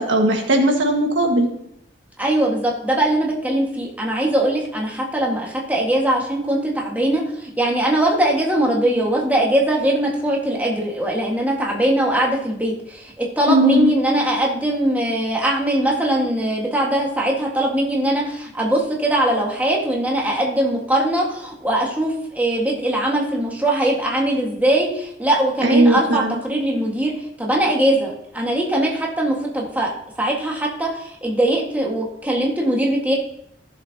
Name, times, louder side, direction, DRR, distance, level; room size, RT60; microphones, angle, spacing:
voice 1, 0.0-1.5 13.5-13.9 25.6-26.4, right 1 dB, 80° right, 3 dB, 1.7 m, -17 dB
voice 2, 2.2-33.1, right 1 dB, 10° right, -2 dB, 1.7 m, -21 dB
15.5 x 7.3 x 2.9 m, 0.75 s
head